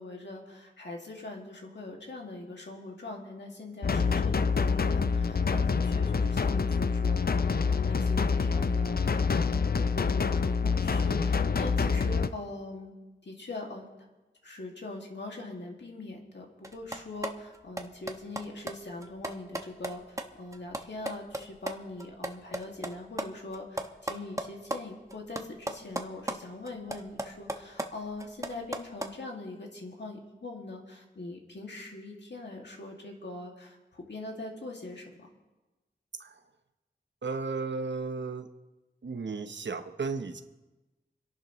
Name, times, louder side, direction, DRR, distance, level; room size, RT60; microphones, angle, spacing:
voice 1, 0.0-12.9 13.2-13.9 14.4-35.3, left 2 dB, 75° left, 0 dB, 2.3 m, -42 dB
sound 1, 3.8-12.3, left 5 dB, 55° left, 0.5 m, -26 dB
sound 2, 16.6-21.7 22.0-24.8 25.1-26.4 26.7-29.1, right 1 dB, 15° right, 1.1 m, -36 dB
voice 2, 37.2-38.5 39.0-40.4, right 4 dB, 80° right, 8 dB, 1.0 m, -34 dB
28.0 x 11.0 x 3.1 m, 1.1 s
wide cardioid pair, 70°, 18 cm